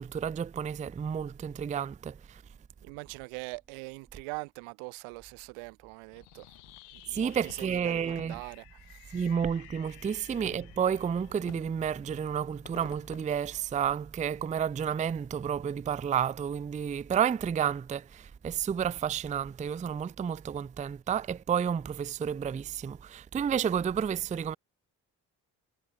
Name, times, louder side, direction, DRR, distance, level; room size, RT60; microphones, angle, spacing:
voice 1, 0.0-2.2 7.1-8.4 9.1-24.6, right 8 dB, 15° right, 0.4 m, -31 dB
voice 2, 2.8-6.5 6.9-9.3, right 29 dB, 85° right, 1.1 m, -43 dB
Fireworks, 6.1-14.3, left 30 dB, 85° left, 3.4 m, -52 dB
hypercardioid pair, 40°, 49 cm